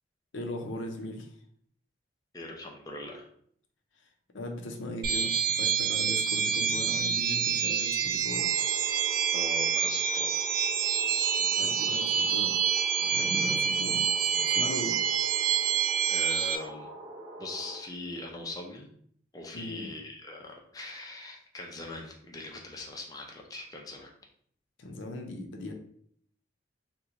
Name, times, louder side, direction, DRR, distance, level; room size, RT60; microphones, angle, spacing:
voice 1, 0.3-1.3 4.3-8.5 11.4-12.6 13.0-14.3 14.5-15.0 19.5-19.9 24.8-25.7, left 1 dB, 90° left, 3 dB, 0.6 m, -38 dB
voice 2, 2.3-3.3 9.3-10.5 16.1-16.9 17.4-18.9 19.3-24.1, left 2 dB, 20° left, 0 dB, 0.5 m, -41 dB
sound 1, 5.0-16.6, right 7 dB, 50° right, 0.4 m, -27 dB
sound 2, 8.3-17.8, right 1 dB, 10° right, 0.7 m, -45 dB
2.9 x 2.2 x 3.7 m, 0.62 s
head